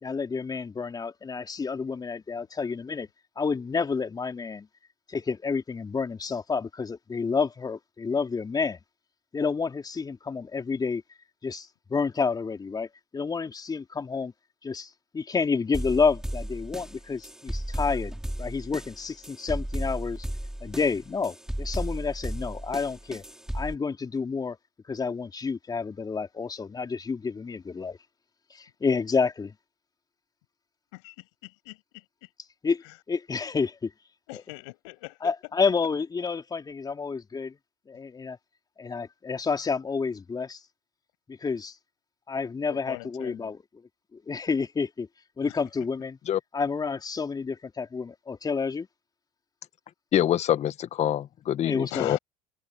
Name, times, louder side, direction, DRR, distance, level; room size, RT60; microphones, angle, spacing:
voice 1, 0.0-3.1 3.4-4.7 5.1-8.8 9.3-11.0 11.4-14.3 14.6-18.1 18.4-20.3 20.6-23.2 23.5-24.6 24.9-28.0 28.5-29.5 32.6-32.8 33.1-33.9 34.3-34.4 35.2-37.6 37.9-38.4 38.8-40.6 41.3-41.8 42.3-43.6 44.1-45.1 45.4-46.2 46.5-48.9 51.6-52.2, left 5 dB, 25° left, 3.8 m, -29 dB
sound 1, 15.7-23.7, right 1 dB, 5° right, 6.5 m, -34 dB
voice 2, 30.9-32.0 34.3-35.3 42.7-43.5 45.4-45.5 51.9-52.2, left 27 dB, 70° left, 7.8 m, -41 dB
voice 3, 50.1-52.2, left 11 dB, 45° left, 1.8 m, -25 dB
hypercardioid pair, 75°, 16 cm